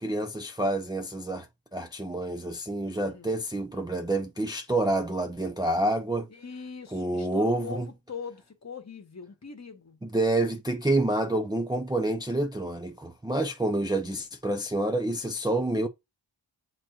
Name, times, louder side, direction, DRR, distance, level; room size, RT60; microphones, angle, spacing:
voice 1, 0.0-1.5 1.7-6.3 6.9-7.9 10.0-15.9, right 1 dB, 10° right, 0.5 m, -28 dB
voice 2, 6.3-10.0, left 6 dB, 35° left, 1.0 m, -41 dB
7.3 x 3.0 x 2.4 m
wide cardioid pair, 75°, 47 cm